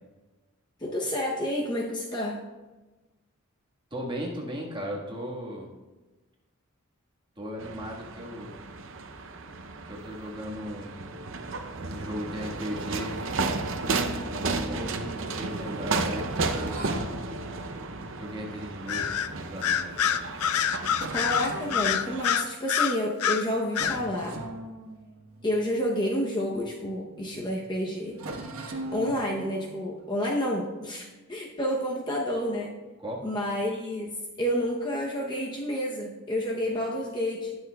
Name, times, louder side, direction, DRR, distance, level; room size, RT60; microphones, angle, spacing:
voice 1, 0.8-2.4 21.1-24.4 25.4-28.2 28.9-32.8 33.2-37.6, equal, 20° left, -2 dB, 0.8 m, -29 dB
voice 2, 3.9-5.7 7.4-8.6 9.8-11.2 11.8-13.2 14.3-16.9 18.1-20.0 33.0-33.3, equal, 20° right, -3 dB, 1.5 m, -37 dB
sound 1, 7.6-22.2, right 3 dB, 60° right, 0.7 m, -33 dB
sound 2, 15.6-19.5 20.1-20.2 20.5-20.6 20.9-22.8 23.2-23.4 23.7-27.1 27.3-27.5 28.1-31.2, right 2 dB, 75° right, 1.2 m, -42 dB
Bird vocalization bird call bird song, 18.9-19.3 19.6-23.4 23.7-24.0, left 8 dB, 85° left, 0.5 m, -26 dB
19.0 x 6.4 x 2.3 m, 1.2 s
head